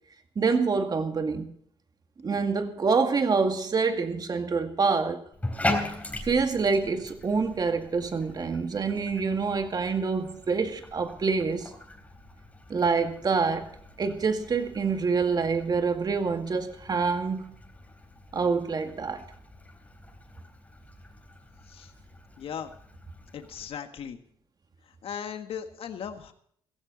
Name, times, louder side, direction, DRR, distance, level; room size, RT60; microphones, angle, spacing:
voice 1, 0.4-1.5 2.2-5.2 6.2-11.7 12.7-13.7 14.0-17.5 18.3-19.2, right 4 dB, 40° right, 2.1 m, -26 dB
Bathtub (filling or washing), 5.3-23.7, left 1 dB, 15° left, 3.7 m, -40 dB
voice 2, 22.4-22.7 23.3-24.2 25.0-26.3, left 8 dB, 65° left, 1.6 m, -37 dB
15.5 x 15.0 x 4.0 m
cardioid pair, 85°, 10 cm